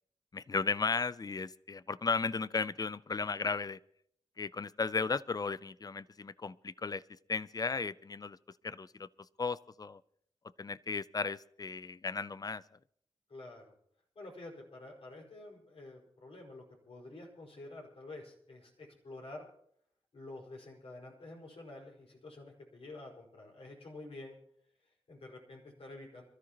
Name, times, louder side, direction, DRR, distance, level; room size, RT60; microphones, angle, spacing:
voice 1, 0.3-3.8 4.4-8.4 8.6-9.1 9.4-10.0 10.6-12.6, left 4 dB, 35° left, 18 dB, 0.5 m, -35 dB
voice 2, 13.3-13.7 14.2-19.5 20.1-24.4 24.8-26.2, left 2 dB, 65° left, -1 dB, 5.1 m, -49 dB
26.5 x 13.5 x 3.0 m, 0.67 s
cardioid pair, 65°, 11 cm